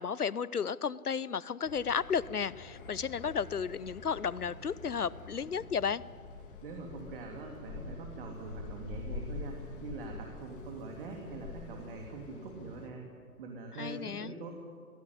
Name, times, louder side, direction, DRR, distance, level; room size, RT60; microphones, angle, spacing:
voice 1, 0.0-6.0 13.8-14.3, left 6 dB, 75° left, 20 dB, 0.8 m, -33 dB
sound 1, 1.6-12.9, left 3 dB, 35° left, 2.6 m, -46 dB
voice 2, 6.6-13.0 13.4-14.5, right 3 dB, 35° right, 1 dB, 3.0 m, -43 dB
24.0 x 16.0 x 9.9 m, 2.2 s
figure-of-eight pair, 130°, 45 cm